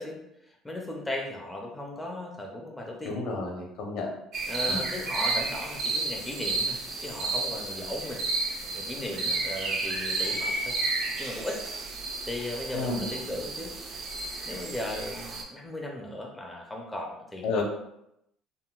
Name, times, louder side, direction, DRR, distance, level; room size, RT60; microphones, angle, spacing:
voice 1, 0.0-3.2 4.5-8.2 8.7-10.8 11.2-11.6 12.3-13.7 14.5-17.6, left 1 dB, 5° left, 0 dB, 0.4 m, -37 dB
voice 2, 3.0-4.1 4.7-4.8 12.7-13.0 17.4-17.6, left 3 dB, 65° left, 1 dB, 0.7 m, -30 dB
sound 1, 4.3-15.4, right 3 dB, 50° right, 0.6 m, -32 dB
3.7 x 2.1 x 2.3 m, 0.80 s
cardioid pair, 140°, 0 cm